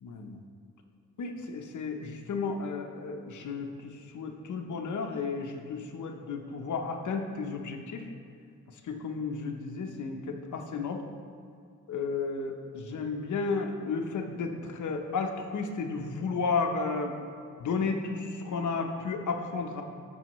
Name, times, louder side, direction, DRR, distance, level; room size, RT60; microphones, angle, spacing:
voice 1, 0.0-0.4 1.2-8.1 8.8-11.0 11.9-17.1 17.6-19.8, left 4 dB, 75° left, 3 dB, 0.9 m, -33 dB
13.5 x 5.6 x 3.1 m, 2.3 s
wide cardioid pair, 130°, 30 cm